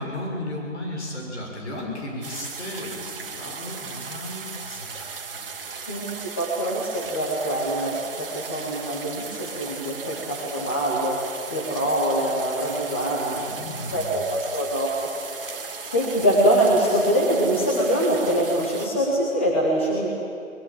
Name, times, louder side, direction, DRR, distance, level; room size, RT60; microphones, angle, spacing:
voice 1, 0.0-6.1 13.5-14.2 15.5-15.6, left 1 dB, 55° left, -1 dB, 6.9 m, -35 dB
sound 1, 2.2-18.9, right 5 dB, 45° right, 1.6 m, -37 dB
voice 2, 5.9-15.6 15.9-20.1, right 1 dB, 10° left, -3 dB, 0.9 m, -24 dB
20.5 x 20.0 x 8.8 m, 2.6 s
figure-of-eight pair, 165°, 40 cm